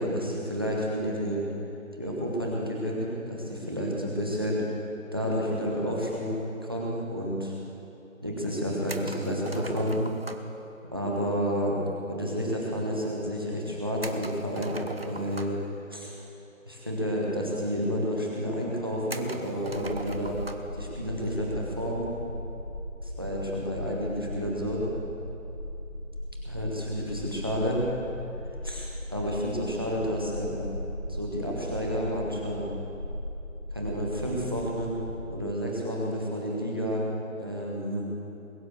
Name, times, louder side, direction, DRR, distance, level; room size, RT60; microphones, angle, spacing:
voice 1, 0.0-1.5 2.0-4.6 5.1-6.4 6.6-7.5 8.2-10.0 10.9-11.8 12.1-15.5 15.9-16.1 16.7-20.4 20.8-22.1 23.0-24.8 26.4-27.8 28.6-30.7 31.1-32.7 33.7-34.9 35.3-37.0 37.4-38.0, equal, 15° right, -3 dB, 1.4 m, -30 dB
sound 1, 8.9-10.6 14.0-15.7 16.8-16.9 17.2-17.3 18.0-18.1 19.1-20.7, right 2 dB, 45° right, 0.9 m, -40 dB
sound 2, 19.7-35.2, left 1 dB, 30° left, 1.3 m, -38 dB
21.0 x 9.0 x 7.1 m, 2.9 s
figure-of-eight pair, 180°, 41 cm